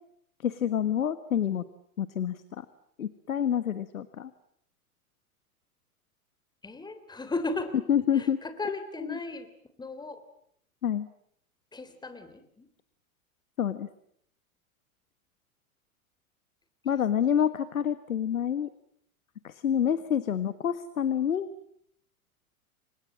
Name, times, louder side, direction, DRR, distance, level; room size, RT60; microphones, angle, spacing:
voice 1, 0.4-1.6 2.0-2.4 3.0-4.3 7.9-8.4 9.0-9.2 10.8-11.1 13.6-13.9 16.8-18.7 19.4-21.5, left 9 dB, 70° left, 14 dB, 1.5 m, -27 dB
voice 2, 6.6-7.7 8.1-9.5 9.8-10.2 11.7-12.7 17.2-17.5 19.8-20.0, left 2 dB, 10° left, 10 dB, 3.3 m, -36 dB
29.5 x 25.0 x 7.6 m, 0.70 s
figure-of-eight pair, 95°, 43 cm